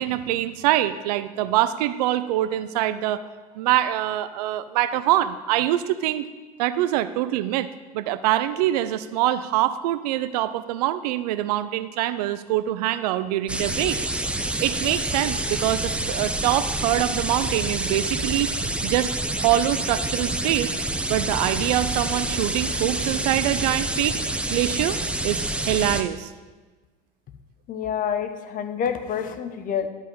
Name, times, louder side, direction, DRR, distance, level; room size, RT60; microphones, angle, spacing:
voice 1, 0.0-3.2 3.6-6.3 6.6-7.7 7.9-14.0 14.6-18.5 18.8-19.1 19.4-20.7 21.1-24.2 24.5-25.0 25.2-26.3, right 13 dB, 70° right, 14 dB, 0.6 m, -24 dB
sound 1, 13.5-26.0, right 1 dB, 5° right, 0.7 m, -27 dB
voice 2, 27.7-29.9, left 8 dB, 40° left, 9 dB, 1.0 m, -27 dB
12.0 x 5.5 x 5.5 m, 1.3 s
hypercardioid pair, 90°, 21 cm